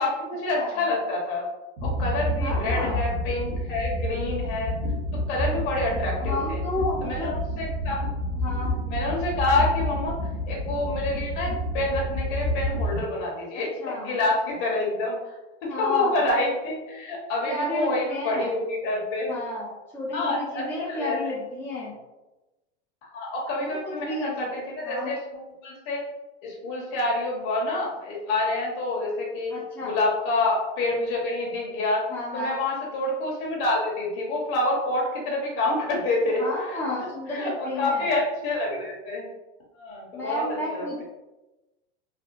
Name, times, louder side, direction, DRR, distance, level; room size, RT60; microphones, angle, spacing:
voice 1, 0.0-1.4 1.8-4.7 5.3-6.6 7.0-8.1 8.9-10.2 10.5-15.3 15.6-19.3 20.1-21.2 23.1-26.1 26.4-29.5 29.8-32.1 32.3-36.8 37.3-39.3 39.7-40.4 40.7-41.0, left 2 dB, 50° left, -2 dB, 1.2 m, -27 dB
sound 1, 1.8-13.0, equal, 55° right, 1.1 m, -29 dB
voice 2, 2.4-3.0 6.2-7.3 8.4-8.7 13.8-14.1 15.7-16.2 17.5-18.6 19.3-21.9 23.5-24.5 24.8-25.1 29.5-30.0 32.1-32.6 36.4-38.1 40.1-41.0, left 2 dB, 5° left, -6 dB, 0.6 m, -32 dB
3.5 x 2.1 x 2.5 m, 1.0 s
supercardioid pair, 125°, 34 cm